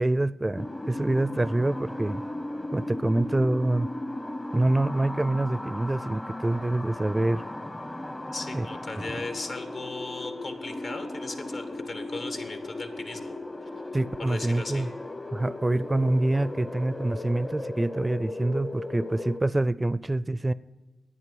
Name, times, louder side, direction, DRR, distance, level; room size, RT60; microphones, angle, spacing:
voice 1, 0.0-2.2 2.7-3.9 4.5-7.4 8.5-8.7 13.9-14.9 15.3-20.5, right 2 dB, 20° right, 18 dB, 0.4 m, -26 dB
sound 1, 0.6-19.4, left 1 dB, 20° left, 0.8 m, -36 dB
voice 2, 8.3-13.3 14.3-14.9, left 3 dB, 65° left, 7 dB, 1.9 m, -37 dB
10.5 x 9.4 x 8.5 m, 1.2 s
cardioid pair, 50°, 0 cm